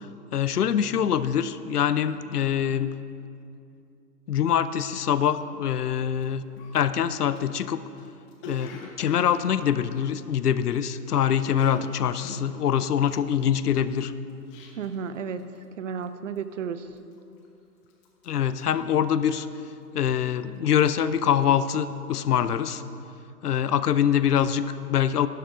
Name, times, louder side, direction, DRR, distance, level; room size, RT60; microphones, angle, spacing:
voice 1, 0.3-2.9 4.3-6.4 6.7-7.8 8.5-14.1 18.3-19.5 19.9-22.8 23.4-25.3, left 9 dB, 65° left, 14 dB, 0.7 m, -24 dB
Cough, 6.1-6.2 6.6-11.0 11.3-15.1 15.4-15.7 16.0-16.5 17.0-17.6 17.9-19.5 19.8-20.2, left 2 dB, 20° left, 0.9 m, -45 dB
voice 2, 14.8-16.9, right 6 dB, 50° right, 12 dB, 0.7 m, -33 dB
12.0 x 12.0 x 3.7 m, 2.6 s
hypercardioid pair, 135°, 49 cm